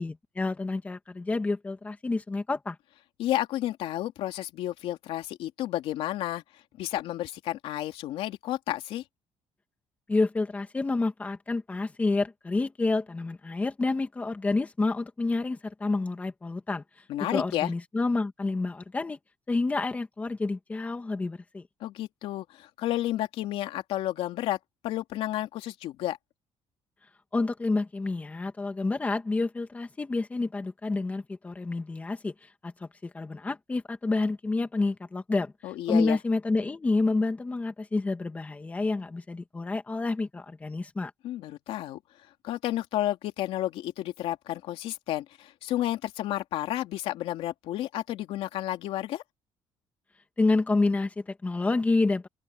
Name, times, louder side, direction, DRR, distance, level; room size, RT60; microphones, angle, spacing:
voice 1, 0.0-2.8 10.1-16.8 17.2-19.2 19.5-21.6 27.3-32.3 32.6-35.5 35.9-41.1 50.4-52.3, left 3 dB, 15° left, 2.2 m, -28 dB
voice 2, 3.2-6.4 6.8-9.0 17.1-17.7 21.8-24.6 24.8-26.2 35.6-36.2 41.2-42.0 42.4-49.2, left 13 dB, 80° left, 3.0 m, -31 dB
open air
cardioid pair, 165°, 10 cm